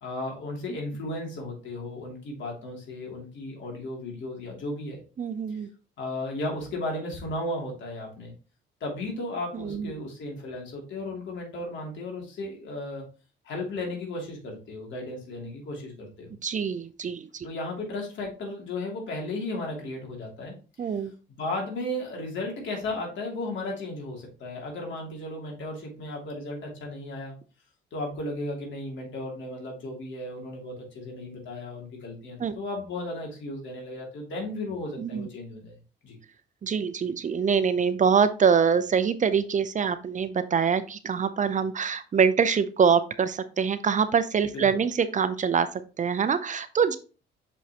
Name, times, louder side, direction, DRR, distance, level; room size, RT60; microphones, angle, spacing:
voice 1, 0.0-5.0 5.5-5.6 6.0-8.3 8.8-13.1 13.4-16.3 17.4-20.9 21.4-27.3 27.9-35.7 36.0-36.2 44.5-44.6, left 2 dB, 70° left, -1 dB, 2.8 m, -35 dB
voice 2, 5.2-5.7 9.5-9.9 16.4-17.5 20.8-21.1 32.4-32.5 35.0-35.3 36.6-45.7 46.0-47.0, right 6 dB, 40° right, 12 dB, 0.6 m, -24 dB
6.3 x 5.4 x 2.9 m, 0.35 s
cardioid pair, 90°, 20 cm